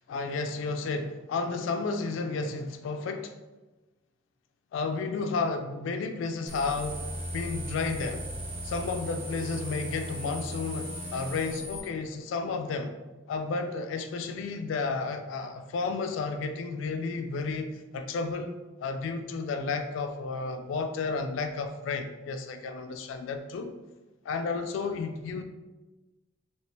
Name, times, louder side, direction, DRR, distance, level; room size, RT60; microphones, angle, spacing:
voice 1, 0.1-3.3 4.7-8.2 8.6-12.9 13.3-15.5 15.7-23.8 24.2-25.4, left 4 dB, 80° left, 6 dB, 0.3 m, -32 dB
sound 1, 6.5-11.8, equal, 30° right, 0.7 m, -37 dB
2.9 x 2.9 x 3.2 m, 1.1 s
head